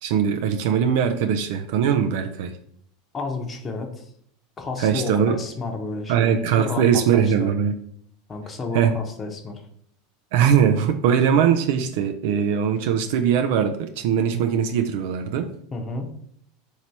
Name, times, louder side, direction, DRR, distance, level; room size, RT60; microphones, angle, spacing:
voice 1, 0.0-2.5 4.8-5.4 6.1-7.7 8.7-8.9 10.3-15.5, right 8 dB, 65° right, 7 dB, 0.3 m, -21 dB
voice 2, 3.1-4.1 4.6-7.5 8.3-9.7 15.7-16.1, left 3 dB, 25° left, 3 dB, 0.8 m, -31 dB
3.0 x 2.7 x 4.5 m, 0.67 s
hypercardioid pair, 95°, 0 cm